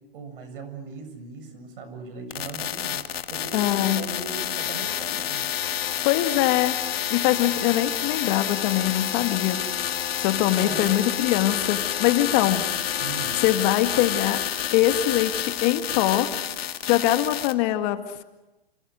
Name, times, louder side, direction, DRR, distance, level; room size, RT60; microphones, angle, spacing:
voice 1, 0.1-5.4 10.4-11.1 13.0-13.4, right 3 dB, 65° right, 8 dB, 7.5 m, -38 dB
sound 1, 2.3-17.5, left 10 dB, 80° left, 2.0 m, -29 dB
voice 2, 3.5-4.0 6.0-6.8 7.1-9.6 10.2-12.6 13.4-14.4 14.7-16.3 16.6-18.2, left 14 dB, 45° left, 8 dB, 2.0 m, -23 dB
28.5 x 26.5 x 6.3 m, 1.0 s
hypercardioid pair, 140°, 30 cm